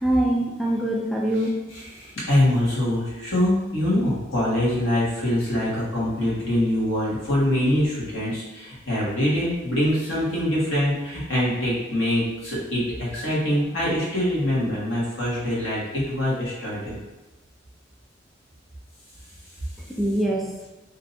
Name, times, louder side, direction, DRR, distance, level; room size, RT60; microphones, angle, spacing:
voice 1, 0.0-1.6 20.0-20.5, right 1 dB, ahead, -3 dB, 0.3 m, -23 dB
voice 2, 1.4-17.0, left 1 dB, 90° left, -7 dB, 1.5 m, -24 dB
2.8 x 2.6 x 4.1 m, 1.1 s
head